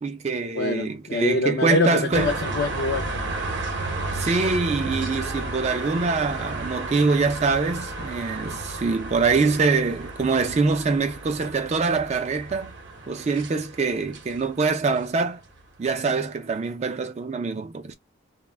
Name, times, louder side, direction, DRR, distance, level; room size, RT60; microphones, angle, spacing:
voice 1, 0.0-2.3 4.1-12.7 13.1-15.4 15.8-17.9, right 4 dB, 35° right, 0.3 m, -24 dB
voice 2, 0.6-3.1, left 3 dB, 55° left, 0.4 m, -24 dB
sound 1, 2.1-15.5, right 2 dB, 60° right, 0.7 m, -33 dB
2.1 x 2.1 x 3.2 m
head